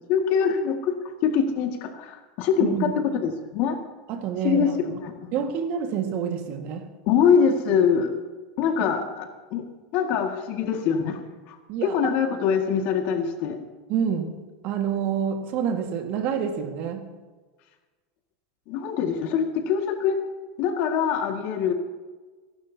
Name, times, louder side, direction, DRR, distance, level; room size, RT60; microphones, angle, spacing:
voice 1, 0.1-3.8 4.4-5.3 7.1-8.1 8.6-9.6 9.9-11.2 11.5-13.6 18.7-20.2 20.6-21.7, left 7 dB, 55° left, 4 dB, 2.0 m, -24 dB
voice 2, 2.6-2.9 4.1-4.7 5.3-6.9 8.8-8.9 11.7-12.1 13.9-17.1, right 8 dB, 50° right, 5 dB, 1.8 m, -28 dB
27.0 x 12.0 x 2.9 m, 1.3 s
supercardioid pair, 140°, 4 cm